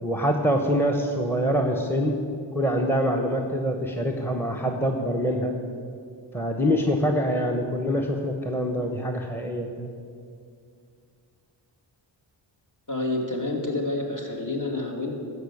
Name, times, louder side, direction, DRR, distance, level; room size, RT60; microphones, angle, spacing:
voice 1, 0.0-2.2 2.5-5.5 6.3-9.9, equal, 5° left, 3 dB, 1.0 m, -25 dB
voice 2, 12.9-15.1, left 2 dB, 45° left, 0 dB, 2.6 m, -28 dB
13.0 x 5.5 x 8.5 m, 2.3 s
cardioid pair, 60°, 45 cm